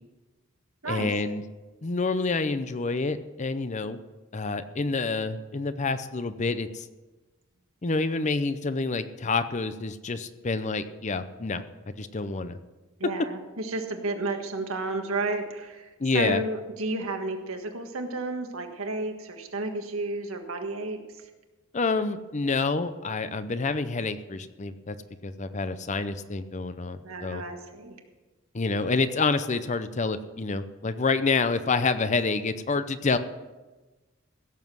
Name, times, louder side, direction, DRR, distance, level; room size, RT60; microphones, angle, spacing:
voice 1, 0.9-1.4 1.8-4.0 4.3-6.9 7.8-12.6 16.0-16.4 21.7-25.0 25.2-27.4 28.5-33.2, left 3 dB, 35° left, 12 dB, 0.6 m, -28 dB
voice 2, 13.0-21.0 27.0-28.0, right 2 dB, 85° right, 5 dB, 1.6 m, -32 dB
16.0 x 7.3 x 6.2 m, 1.2 s
head